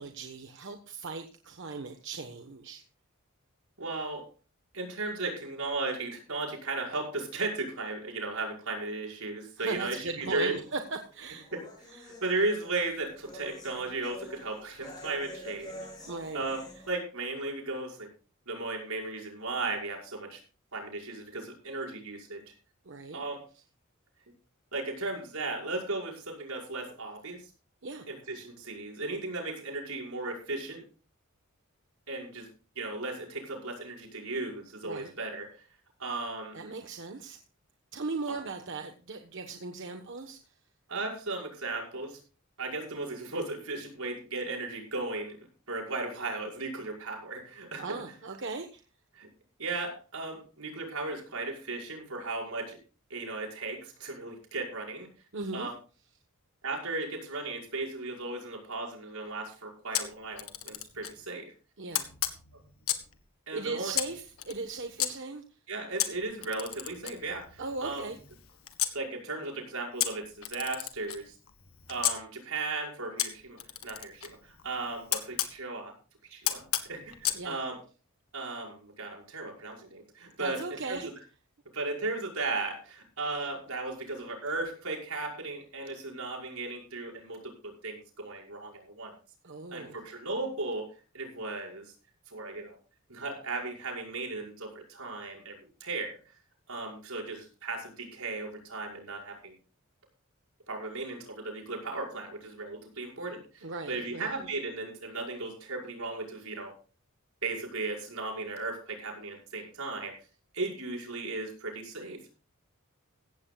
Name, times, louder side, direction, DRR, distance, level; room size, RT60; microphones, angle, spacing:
voice 1, 0.0-2.8 9.6-11.5 11.9-12.1 16.1-16.5 22.8-23.2 27.8-28.1 34.8-35.1 36.5-37.4 37.9-40.4 47.8-48.8 55.3-55.7 61.8-62.1 63.5-65.4 67.6-68.2 77.3-77.6 80.4-81.1 89.4-90.0 103.6-104.3, right 3 dB, 60° right, 6 dB, 1.2 m, -38 dB
voice 2, 3.8-4.3 4.7-10.5 11.5-11.6 12.0-15.9 16.3-18.1 18.5-20.4 20.7-22.5 23.1-23.4 24.7-27.4 28.1-30.8 32.1-32.5 32.8-35.5 36.0-36.6 38.3-38.4 40.9-42.2 42.6-45.4 45.7-47.8 49.1-49.3 49.6-52.8 53.1-55.1 55.5-55.7 56.6-61.5 63.5-63.9 65.7-68.1 68.9-71.3 71.9-73.6 73.8-75.9 76.3-76.6 76.9-77.8 78.3-81.0 81.7-89.1 89.7-90.9 91.1-91.9 92.3-92.8 93.1-96.2 96.7-99.6 100.7-106.7 107.4-110.1 110.5-112.2, right 3 dB, 85° right, -1 dB, 5.9 m, -36 dB
sound 1, 10.5-16.9, equal, 20° left, 7.7 m, -47 dB
Camera, 59.9-61.2 61.9-63.2 63.9-65.1 66.0-69.0 70.0-72.2 73.2-75.5 76.4-77.4, left 12 dB, 90° left, 1.7 m, -34 dB
16.0 x 15.0 x 2.4 m, 0.35 s
head